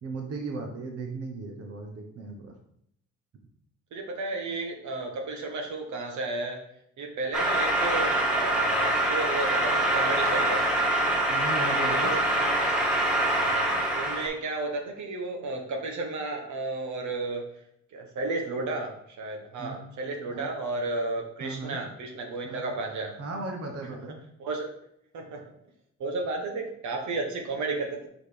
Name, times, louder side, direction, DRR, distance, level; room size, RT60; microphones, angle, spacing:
voice 1, 0.0-2.5 11.3-12.1 19.6-19.8 20.3-20.5 21.4-21.8 22.4-22.6 23.2-24.2, right 3 dB, 50° right, 2 dB, 1.2 m, -36 dB
voice 2, 3.9-6.6 7.0-10.7 11.9-12.5 13.3-17.5 17.9-23.1 23.9-24.0 24.4-24.7 25.1-25.4 26.0-28.1, right 3 dB, 70° right, 2 dB, 1.3 m, -33 dB
sound 1, 7.3-14.3, right 1 dB, 5° right, 1.8 m, -25 dB
5.1 x 4.0 x 5.1 m, 0.73 s
cardioid pair, 90°, 30 cm